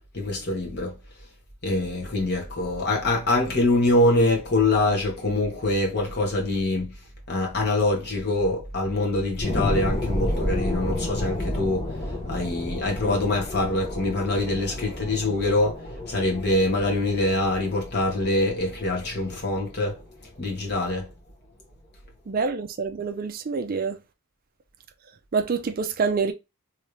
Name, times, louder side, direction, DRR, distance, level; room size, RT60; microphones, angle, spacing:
voice 1, 0.1-1.0 1.6-6.9 7.3-20.0 20.4-21.1, left 2 dB, 50° left, 1.3 m, -24 dB
sound 1, 9.4-20.4 20.9-21.0, left 1 dB, 35° left, 1.5 m, -32 dB
voice 2, 22.3-24.0 25.3-26.3, right 5 dB, 40° right, 0.4 m, -26 dB
3.1 x 2.6 x 3.2 m
head